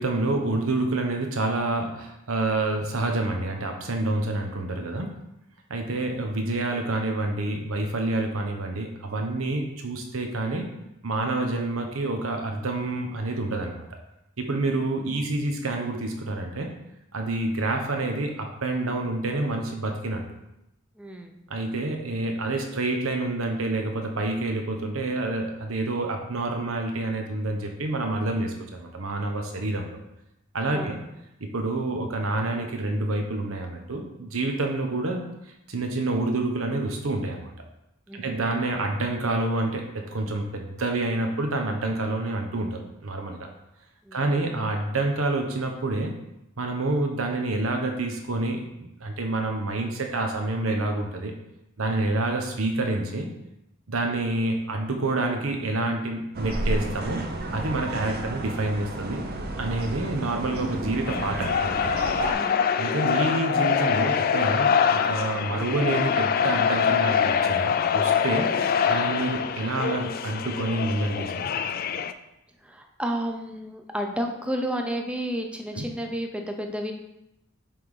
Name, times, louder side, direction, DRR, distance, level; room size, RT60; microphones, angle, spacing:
voice 1, 0.0-5.1 5.7-10.7 11.0-13.8 14.4-16.7 17.1-20.2 21.5-30.0 30.5-31.0 31.4-35.3 35.7-37.5 38.1-43.5 44.1-46.1 46.6-51.3 51.8-53.3 53.9-59.3 59.6-61.8 62.8-68.5 68.9-71.5 75.7-75.8, right 2 dB, 90° right, 3 dB, 1.0 m, -28 dB
voice 2, 21.0-21.4 30.7-31.0 38.1-38.4 44.0-44.2 62.3-62.7 72.6-76.9, equal, 5° right, 3 dB, 0.6 m, -31 dB
sound 1, 56.3-62.3, right 1 dB, 50° right, 0.6 m, -31 dB
sound 2, 61.1-72.1, left 7 dB, 45° left, 0.3 m, -24 dB
5.9 x 3.6 x 4.8 m, 0.87 s
head